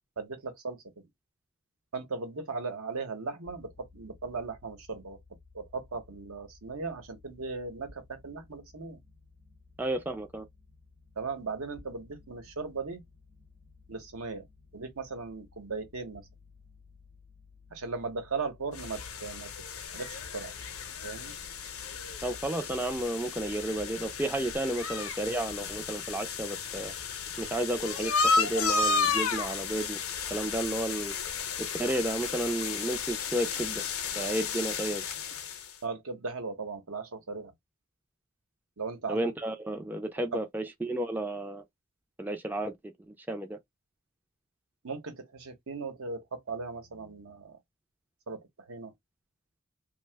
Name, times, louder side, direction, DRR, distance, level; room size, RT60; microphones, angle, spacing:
voice 1, 0.2-0.8 1.9-5.2 5.5-9.0 11.2-13.0 13.9-14.5 14.7-16.2 17.7-19.5 19.9-20.5 21.0-21.4 35.8-37.5 38.8-39.3 40.3-40.4 44.8-47.6 48.3-48.9, right 4 dB, 80° right, 0.9 m, -37 dB
sound 1, 3.5-22.3, left 4 dB, 45° right, 0.9 m, -57 dB
voice 2, 9.8-10.5 22.2-26.9 27.4-31.1 31.6-33.8 34.2-35.0 39.1-41.6 42.2-43.6, right 1 dB, 10° right, 0.3 m, -32 dB
sound 2, 18.7-35.7, left 5 dB, 80° left, 0.6 m, -33 dB
2.8 x 2.1 x 3.3 m
head